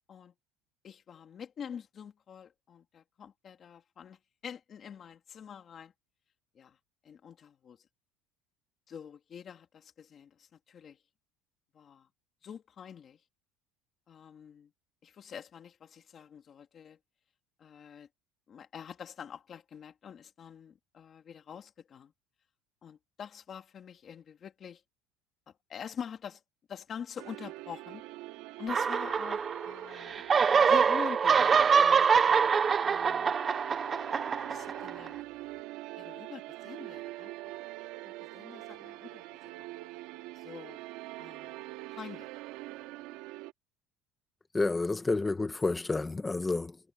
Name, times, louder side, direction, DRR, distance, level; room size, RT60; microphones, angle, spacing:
voice 1, 0.8-5.9 6.5-6.8 7.0-7.8 8.9-11.0 11.7-12.1 12.4-13.2 14.1-14.7 15.0-17.0 17.6-18.1 18.5-22.1 22.8-24.8 25.7-26.4 26.7-28.0 28.6-30.2 30.7-32.1 32.8-33.3 34.5-35.2 36.0-37.6 38.0-39.7 40.3-40.8 41.2-41.6 41.9-42.3, left 7 dB, 25° left, 2.7 m, -46 dB
sound 1, 27.2-43.5, right 18 dB, 60° right, 2.0 m, -44 dB
sound 2, 28.7-29.8 30.1-35.1, right 6 dB, 20° right, 0.5 m, -25 dB
voice 2, 44.5-46.8, left 3 dB, 10° left, 1.5 m, -30 dB
cardioid pair, 175°, 0 cm